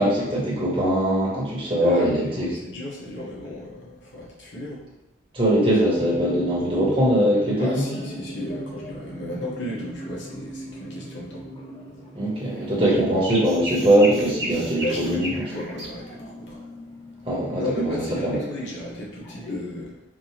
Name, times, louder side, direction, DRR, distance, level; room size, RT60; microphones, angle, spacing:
voice 1, 0.0-2.5 5.3-7.9 12.1-15.4 17.2-18.4, right 1 dB, 30° right, -5 dB, 1.1 m, -21 dB
voice 2, 1.8-4.8 7.6-11.4 12.7-13.2 14.8-16.6 17.6-20.0, left 1 dB, 75° left, -4 dB, 1.0 m, -34 dB
sound 1, 6.2-19.5, equal, 30° left, 1.4 m, -40 dB
sound 2, 12.6-15.9, right 1 dB, 60° right, 1.2 m, -33 dB
4.7 x 2.4 x 2.9 m, 0.91 s
head